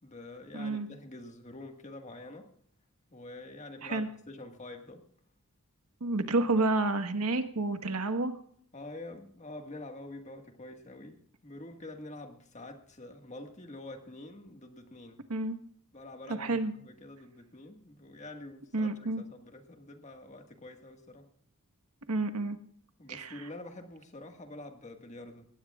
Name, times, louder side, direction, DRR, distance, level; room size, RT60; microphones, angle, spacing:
voice 1, 0.0-2.5 3.1-5.0 6.6-6.7 8.7-15.2 15.9-21.3 23.0-25.5, left 2 dB, 30° left, 5 dB, 1.7 m, -46 dB
voice 2, 0.5-0.9 3.8-4.1 6.0-8.3 15.3-15.6 16.3-16.7 18.7-19.2 22.1-22.6 23.1-23.4, right 2 dB, 90° right, 8 dB, 1.4 m, -30 dB
20.0 x 18.0 x 2.4 m, 0.63 s
head